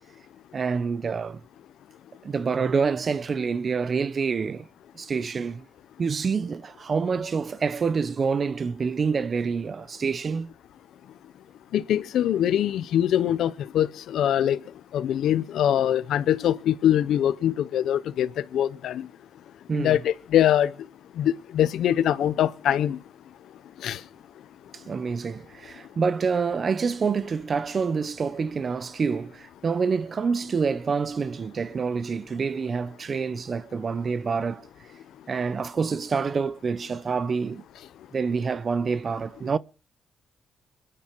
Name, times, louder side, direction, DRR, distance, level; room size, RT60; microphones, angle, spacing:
voice 1, 0.5-1.4 2.2-4.7 4.9-5.7 6.0-10.5 19.7-20.0 24.7-34.7 35.3-37.6 38.1-39.6, right 5 dB, 40° right, 0.7 m, -27 dB
voice 2, 11.7-14.6 14.9-19.1 19.7-20.7 21.2-23.0 23.8-24.0, left 11 dB, 85° left, 0.7 m, -23 dB
27.0 x 10.0 x 4.5 m
cardioid pair, 105°, 0 cm